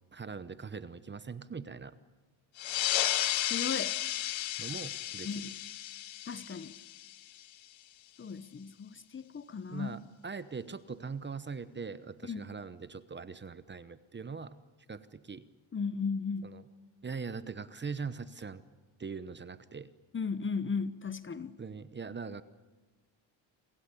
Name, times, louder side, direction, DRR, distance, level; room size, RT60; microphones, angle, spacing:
voice 1, 0.1-2.0 4.6-5.5 9.7-14.6 14.9-15.4 16.4-16.6 17.0-18.6 19.0-19.9 21.6-22.4, right 5 dB, 25° right, 14 dB, 0.9 m, -41 dB
sound 1, 2.6-7.6, left 13 dB, 70° left, 1.2 m, -33 dB
voice 2, 3.5-4.0 5.2-5.6 6.3-6.7 8.2-10.0 12.2-12.4 15.7-16.5 20.1-21.5, left 5 dB, 25° left, 14 dB, 0.9 m, -36 dB
28.5 x 16.0 x 9.9 m, 1.2 s
cardioid pair, 125°, 48 cm